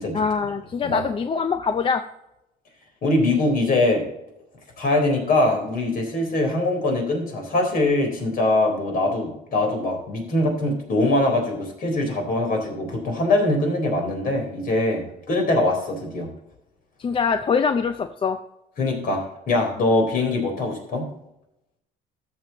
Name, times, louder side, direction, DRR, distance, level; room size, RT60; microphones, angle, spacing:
voice 1, 0.1-2.0 17.0-18.4, left 5 dB, 30° left, 9 dB, 0.5 m, -23 dB
voice 2, 3.0-4.0 4.8-16.3 18.8-21.1, left 2 dB, 60° left, 2 dB, 4.0 m, -22 dB
13.5 x 6.9 x 2.9 m, 0.85 s
cardioid pair, 110°, 17 cm